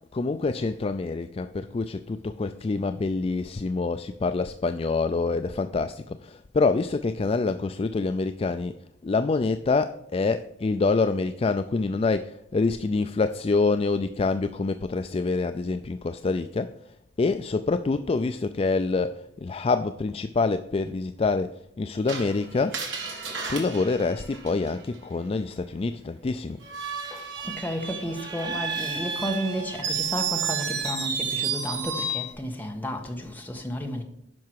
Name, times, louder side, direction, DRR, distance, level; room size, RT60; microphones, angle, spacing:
voice 1, 0.1-8.7 9.0-16.8 17.2-22.9 23.5-26.6, left 3 dB, 30° left, 0.3 m, -26 dB
Screech, 22.1-25.0 26.6-32.3, right 5 dB, 75° right, 2.4 m, -31 dB
voice 2, 27.1-34.0, equal, 10° left, 1.4 m, -32 dB
10.5 x 5.8 x 4.6 m
head